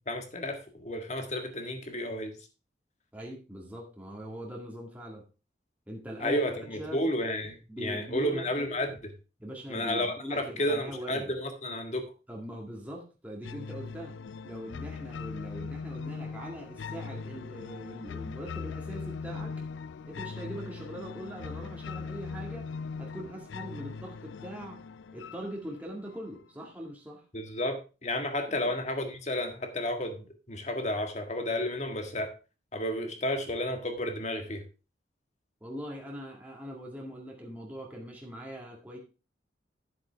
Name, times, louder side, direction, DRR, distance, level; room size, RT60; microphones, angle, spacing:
voice 1, 0.0-2.4 6.2-9.1 9.7-12.1 27.3-32.3 32.7-34.6, left 1 dB, 40° left, 5 dB, 1.7 m, -32 dB
voice 2, 3.1-5.2 5.9-7.0 7.7-8.5 9.4-11.3 12.3-14.2 14.4-19.6 20.0-22.7 23.0-24.8 25.1-27.2 28.5-28.7 35.6-39.0, equal, 10° right, -2 dB, 1.9 m, -41 dB
sound 1, 13.4-26.4, left 5 dB, 90° left, 0.4 m, -40 dB
10.5 x 7.7 x 3.5 m, 0.32 s
head